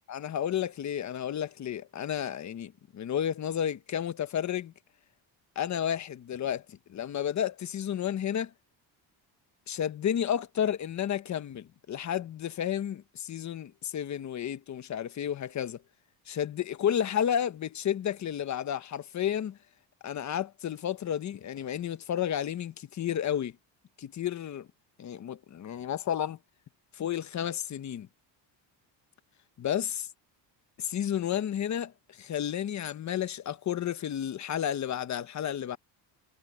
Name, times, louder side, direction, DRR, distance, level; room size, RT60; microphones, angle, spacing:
voice 1, 0.1-4.7 5.5-8.5 9.7-15.8 16.3-19.6 20.0-23.5 24.0-24.7 25.0-26.4 26.9-28.1 29.6-29.9 30.8-35.8, left 9 dB, 40° left, 1.2 m, -32 dB
cardioid pair, 140°, 44 cm